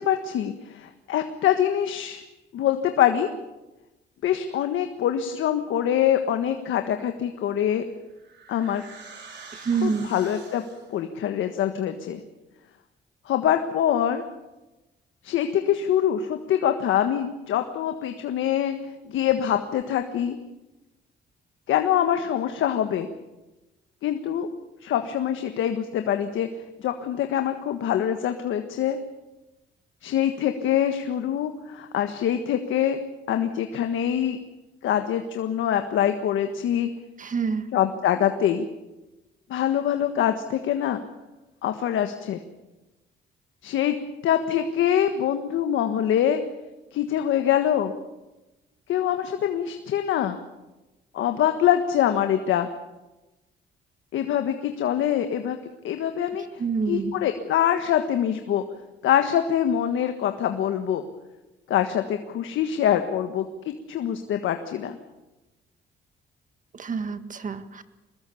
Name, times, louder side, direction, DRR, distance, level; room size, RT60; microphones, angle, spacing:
voice 1, 0.0-2.2 2.5-3.3 4.2-7.8 8.5-8.8 9.8-10.6 10.9-12.2 13.2-14.2 15.2-18.8 19.1-20.4 21.7-23.1 24.0-24.5 24.8-26.5 26.8-29.0 30.0-33.0 33.3-34.4 34.8-36.9 37.7-38.7 39.5-41.0 41.6-42.4 43.6-44.0 44.2-46.4 46.9-47.9 48.9-50.4 51.1-52.7 54.1-55.6 55.8-56.6 56.9-58.6 59.0-61.0 61.7-63.4 63.9-65.0, left 10 dB, 80° left, 7 dB, 1.5 m, -24 dB
sound 1, 7.6-11.0, right 4 dB, 65° right, 5.9 m, -46 dB
voice 2, 9.5-10.1 37.2-37.7 56.6-57.2 66.7-67.8, right 5 dB, 40° right, 10 dB, 1.8 m, -27 dB
23.5 x 20.5 x 7.1 m, 1.0 s
cardioid pair, 90°, 20 cm